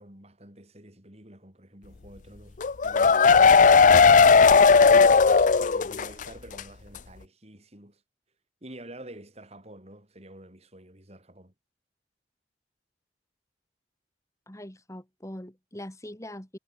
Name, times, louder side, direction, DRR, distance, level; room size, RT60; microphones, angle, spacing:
voice 1, 0.0-2.6 2.8-4.5 5.6-8.0 8.6-11.5, right 1 dB, 35° right, 6.5 m, -48 dB
sound 1, 2.6-6.2 6.5-6.6 7.0-7.1, left 5 dB, 45° left, 0.5 m, -16 dB
voice 2, 14.5-16.6, left 1 dB, 15° left, 2.7 m, -42 dB
head